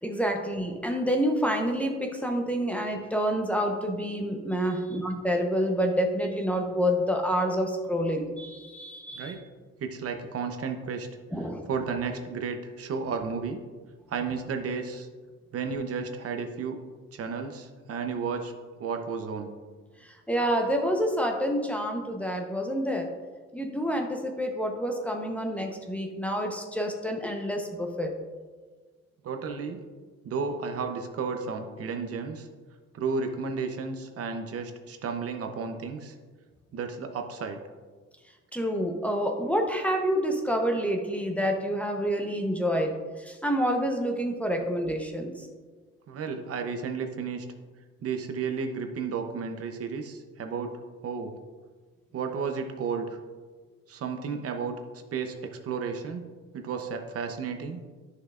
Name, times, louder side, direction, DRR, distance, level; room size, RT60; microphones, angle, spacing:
voice 1, 0.0-9.3 11.3-11.7 20.3-23.1 23.5-28.1 38.5-42.9 43.2-45.3, equal, 5° left, 2 dB, 0.8 m, -28 dB
voice 2, 9.8-11.1 11.4-13.6 14.1-15.1 15.5-16.8 17.1-18.5 18.8-19.5 29.2-29.8 30.2-32.5 32.9-36.1 36.7-37.6 46.1-47.4 48.0-50.7 51.0-51.3 52.1-53.0 53.9-56.3 56.5-57.8, right 5 dB, 50° right, 5 dB, 0.8 m, -33 dB
11.0 x 6.6 x 2.5 m, 1.4 s
cardioid pair, 105°, 29 cm